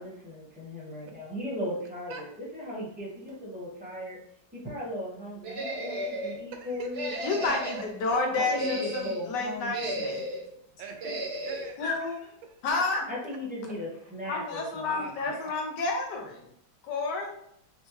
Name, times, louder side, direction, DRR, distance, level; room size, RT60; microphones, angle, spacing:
voice 1, 0.0-4.2 4.5-7.6 8.3-10.3 13.1-14.9, left 1 dB, 5° right, -6 dB, 0.9 m, -37 dB
sound 1, 5.4-6.4 6.9-7.9 8.4-9.2 9.7-10.5 11.0-11.7, equal, 60° right, 0.6 m, -34 dB
voice 2, 6.5-8.2 10.8-12.6 14.8-15.5, right 5 dB, 85° right, 5 dB, 1.4 m, -44 dB
voice 3, 7.2-10.2 11.8-12.2 12.6-13.1 14.3-16.4 16.8-17.4, left 3 dB, 70° left, 2 dB, 1.2 m, -30 dB
4.4 x 2.2 x 3.0 m, 0.72 s
omnidirectional pair, 2.1 m